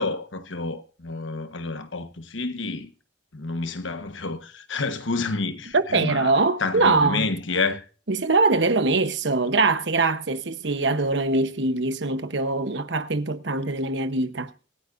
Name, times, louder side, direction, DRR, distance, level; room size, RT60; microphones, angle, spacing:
voice 1, 0.0-2.9 3.3-7.8, left 3 dB, 90° left, 1.3 m, -29 dB
voice 2, 5.7-7.3 8.1-14.5, right 3 dB, 70° right, 1.0 m, -23 dB
24.5 x 9.5 x 2.6 m
head